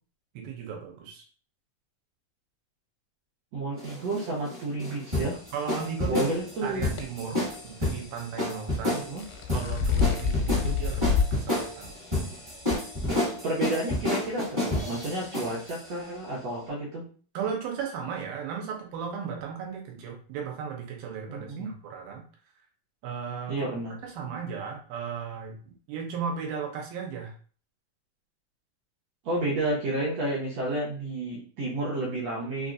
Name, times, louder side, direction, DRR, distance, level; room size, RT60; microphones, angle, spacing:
voice 1, 0.3-1.2 5.5-6.3 6.6-9.0 9.5-11.9 17.3-22.2 23.0-23.7 24.0-27.3, right 6 dB, 85° right, 0 dB, 2.7 m, -36 dB
voice 2, 3.5-5.4 6.1-6.8 8.9-9.2 10.5-10.8 13.3-17.0 21.3-21.7 23.5-24.0 29.2-32.7, right 2 dB, 70° right, -5 dB, 1.6 m, -31 dB
sound 1, 3.8-15.8, left 1 dB, 50° right, 0.3 m, -30 dB
sound 2, 6.8-7.0 9.0-11.4 11.8-11.9 12.7-12.8, left 6 dB, 85° left, 2.4 m, -26 dB
5.7 x 2.7 x 2.5 m, 0.42 s
omnidirectional pair, 4.2 m